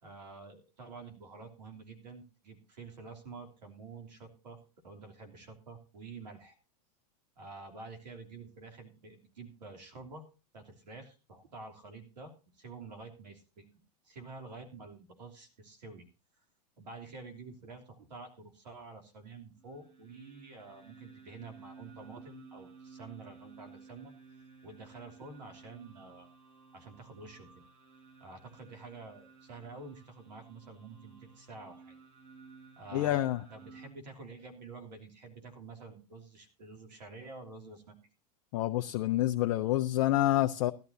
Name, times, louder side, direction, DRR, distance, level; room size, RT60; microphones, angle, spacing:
voice 1, 0.0-6.6 7.4-10.2 10.5-13.6 14.0-16.0 16.8-24.1 24.6-26.3 26.7-27.5 28.2-32.0 32.7-33.2 33.5-37.9, right 3 dB, 80° right, 3.0 m, -49 dB
sound 1, 19.6-33.9, right 4 dB, 55° right, 5.2 m, -55 dB
voice 2, 32.9-33.4 38.5-40.7, left 15 dB, 60° left, 0.7 m, -28 dB
16.5 x 12.0 x 2.7 m
hypercardioid pair, 95°, 21 cm